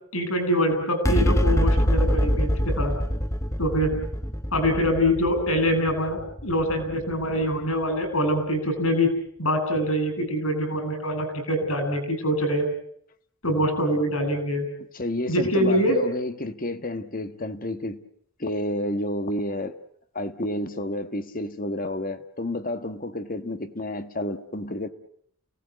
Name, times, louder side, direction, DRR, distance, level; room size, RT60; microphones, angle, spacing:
voice 1, 0.1-2.9 3.6-3.9 4.5-9.1 9.4-12.7 13.4-14.7 15.3-16.0, equal, 70° left, 7.5 m, -24 dB
sound 1, 1.0-7.7, equal, 15° left, 1.1 m, -25 dB
voice 2, 14.9-18.0 18.4-19.8 20.1-24.9, left 1 dB, 40° left, 1.4 m, -30 dB
30.0 x 18.5 x 9.4 m
head